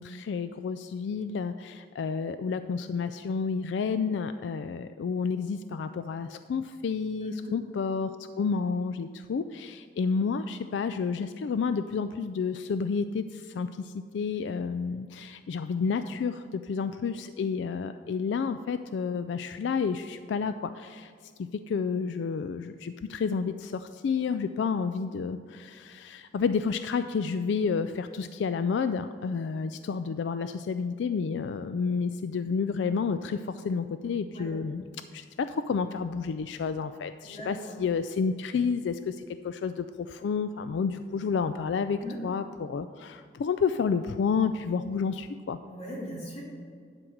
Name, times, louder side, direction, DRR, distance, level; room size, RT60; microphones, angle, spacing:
voice 1, 0.0-21.1 21.4-45.6, left 5 dB, 75° left, 11 dB, 0.3 m, -30 dB
voice 2, 7.2-7.5 34.3-34.5 37.2-37.7 42.0-42.2 45.7-46.4, equal, 35° left, -4 dB, 2.6 m, -39 dB
11.5 x 4.5 x 6.4 m, 2.1 s
head